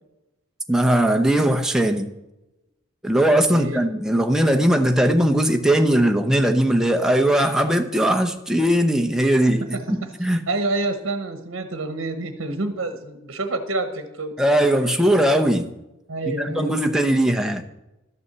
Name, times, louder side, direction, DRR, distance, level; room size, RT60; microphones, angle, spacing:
voice 1, 0.7-2.1 3.0-10.5 14.4-15.7 16.4-17.6, right 1 dB, 5° right, 5 dB, 0.7 m, -19 dB
voice 2, 10.5-14.9 16.1-16.7, right 2 dB, 70° right, 7 dB, 1.0 m, -28 dB
12.5 x 6.9 x 6.8 m, 0.97 s
head